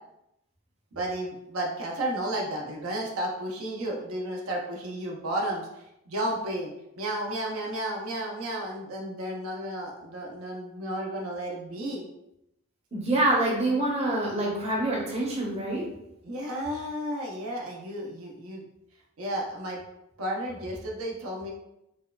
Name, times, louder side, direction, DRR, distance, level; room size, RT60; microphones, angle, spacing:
voice 1, 0.9-12.0 16.2-18.6 19.2-19.8 20.2-21.5, right 1 dB, 80° right, -1 dB, 0.6 m, -33 dB
voice 2, 12.9-15.8, right 1 dB, 30° right, -3 dB, 0.7 m, -26 dB
4.2 x 2.2 x 2.3 m, 0.84 s
head